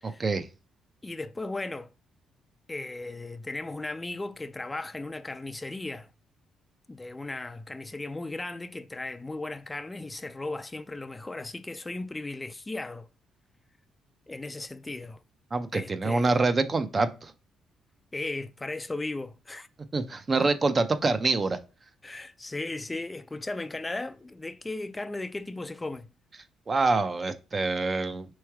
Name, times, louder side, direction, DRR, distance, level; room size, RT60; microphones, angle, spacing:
voice 1, 0.0-0.4 15.5-17.3 19.9-21.6 26.7-28.3, right 3 dB, 35° right, 0.5 m, -26 dB
voice 2, 1.0-1.9 2.7-6.1 6.9-13.1 14.3-15.2 15.7-16.4 18.1-19.7 20.3-20.5 22.0-26.1, left 2 dB, 20° left, 0.3 m, -36 dB
3.4 x 3.1 x 4.6 m
cardioid pair, 90°, 0 cm